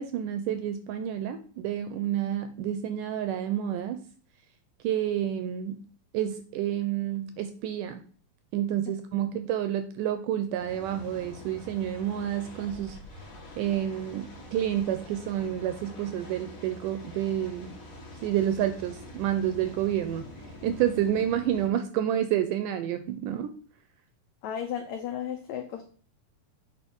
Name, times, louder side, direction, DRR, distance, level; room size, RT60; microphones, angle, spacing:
voice 1, 0.0-4.0 4.8-5.8 6.1-8.0 8.5-13.0 13.6-17.7 18.2-20.3 20.6-23.5, right 10 dB, 80° right, 10 dB, 1.9 m, -29 dB
sound 1, 10.5-21.7, left 1 dB, 45° left, 1.1 m, -45 dB
voice 2, 24.4-25.9, left 9 dB, 85° left, 5 dB, 1.6 m, -34 dB
8.0 x 4.8 x 5.3 m, 0.43 s
omnidirectional pair, 4.2 m